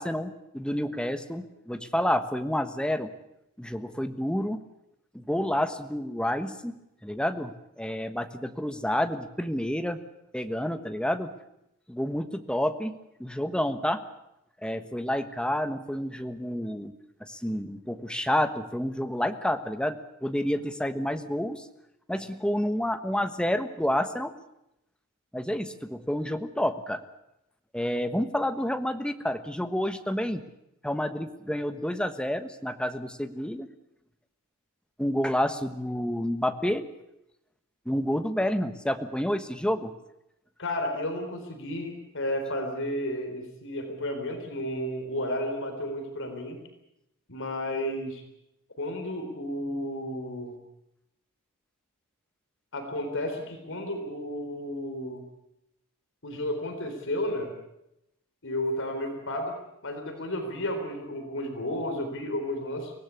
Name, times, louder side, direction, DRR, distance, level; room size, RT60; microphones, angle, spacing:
voice 1, 0.0-3.1 3.6-4.6 5.1-6.7 7.0-10.0 10.3-11.3 11.9-12.9 13.2-14.0 14.6-16.9 17.2-21.7 22.1-24.3 25.3-27.0 27.7-30.4 30.8-33.7 35.0-36.9 37.8-39.9, left 1 dB, 5° left, 9 dB, 1.3 m, -29 dB
voice 2, 40.6-46.6 47.3-48.2 48.8-50.5 52.7-55.2 56.2-57.5 58.4-59.5 59.8-62.9, left 1 dB, 60° left, 5 dB, 4.2 m, -32 dB
24.0 x 17.5 x 8.5 m, 0.84 s
head